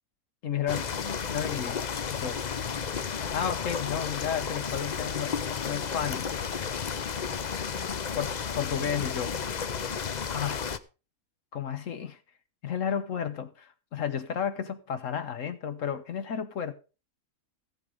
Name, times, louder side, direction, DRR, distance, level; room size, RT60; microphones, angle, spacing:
voice 1, 0.4-0.9 1.2-1.8 2.1-2.4 3.3-6.3 7.9-9.4 10.3-10.7 11.5-12.2 12.6-16.7, left 8 dB, 65° left, 1.2 m, -32 dB
sound 1, 0.7-10.8, left 6 dB, 45° left, 0.6 m, -32 dB
15.5 x 7.8 x 5.0 m
omnidirectional pair, 1.5 m